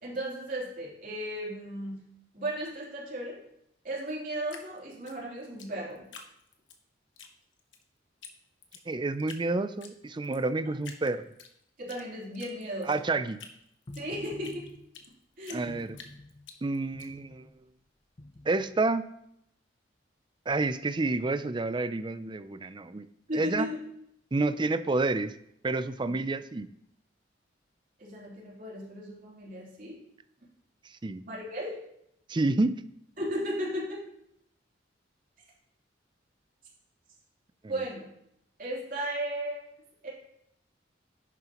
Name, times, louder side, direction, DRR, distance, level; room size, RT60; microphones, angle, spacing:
voice 1, 0.0-2.0 2.3-3.4 3.8-6.0 11.8-12.9 13.9-14.7 15.4-15.8 23.3-23.8 28.0-30.0 31.2-31.8 33.2-34.0 37.7-38.1 38.6-39.6 40.0-40.1, right 1 dB, 50° right, -5 dB, 3.3 m, -35 dB
Drip, 4.5-6.8 7.2-7.8 8.2-8.3 8.6-9.4 9.8-10.4 10.8-12.0 12.3-15.1 15.4-17.1, left 6 dB, 85° left, 1.2 m, -48 dB
voice 2, 8.9-11.3 12.9-13.4 15.5-16.0 16.6-17.5 18.5-19.0 20.5-23.1 23.3-23.7 24.3-25.3 25.6-26.7 31.0-31.2 32.3-32.8 37.6-37.7, right 3 dB, 25° right, 12 dB, 0.4 m, -29 dB
sound 1, 13.9-14.9 15.7-16.5 16.9-17.6 18.2-18.8, left 1 dB, 30° left, 0.6 m, -48 dB
11.0 x 9.4 x 3.0 m, 0.76 s
head